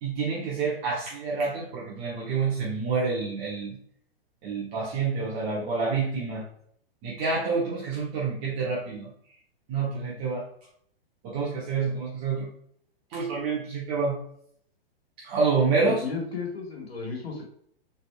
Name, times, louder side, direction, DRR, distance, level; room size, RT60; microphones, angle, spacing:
voice 1, 0.0-3.7 4.4-6.4 7.0-9.1 9.7-10.5 11.2-12.5 13.1-14.2 15.2-16.0, right 4 dB, 35° right, -5 dB, 1.1 m, -28 dB
voice 2, 15.8-17.4, left 5 dB, 85° left, 1 dB, 1.6 m, -34 dB
4.2 x 3.9 x 2.3 m, 0.65 s
hypercardioid pair, 115°, 30 cm